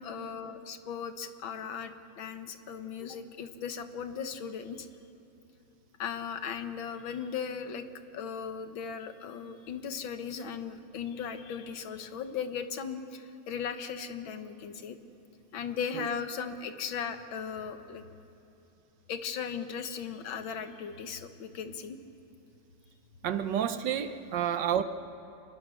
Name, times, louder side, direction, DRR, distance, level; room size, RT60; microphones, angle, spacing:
voice 1, 0.0-4.9 6.0-7.9 8.1-15.0 15.5-18.0 19.1-22.0, left 6 dB, 75° left, 9 dB, 1.9 m, -37 dB
voice 2, 23.2-24.8, right 9 dB, 65° right, 10 dB, 1.4 m, -29 dB
27.5 x 20.5 x 6.4 m, 2.8 s
omnidirectional pair, 2.2 m